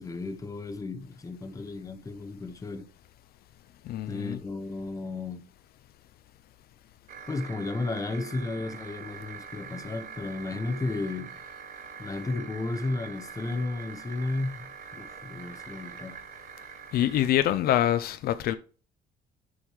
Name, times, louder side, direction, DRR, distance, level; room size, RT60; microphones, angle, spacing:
voice 1, 0.0-2.9 4.1-5.4 7.3-11.3 12.0-16.2, left 2 dB, 20° left, 1.0 m, -33 dB
voice 2, 3.9-4.4 16.9-18.5, left 12 dB, 65° left, 0.5 m, -25 dB
sound 1, 7.1-17.3, right 7 dB, 50° right, 1.1 m, -44 dB
8.8 x 6.4 x 3.2 m
cardioid pair, 110°, 17 cm